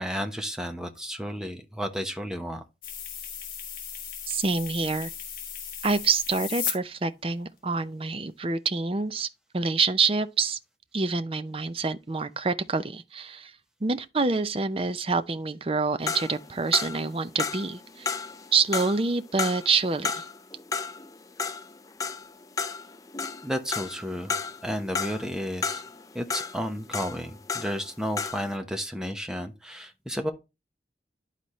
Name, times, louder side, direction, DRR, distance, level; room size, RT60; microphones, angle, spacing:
voice 1, 0.0-2.6 23.4-25.8 26.1-30.3, equal, 5° right, 0.9 m, -32 dB
sound 1, 2.8-6.7, left 8 dB, 50° left, 1.7 m, -36 dB
voice 2, 4.3-5.1 5.8-9.3 9.5-10.6 10.9-13.5 13.8-18.2 18.5-20.2, right 4 dB, 30° right, 0.5 m, -27 dB
sound 2, 16.0-27.9 28.1-28.5, left 5 dB, 20° left, 0.4 m, -33 dB
11.5 x 4.1 x 3.1 m
head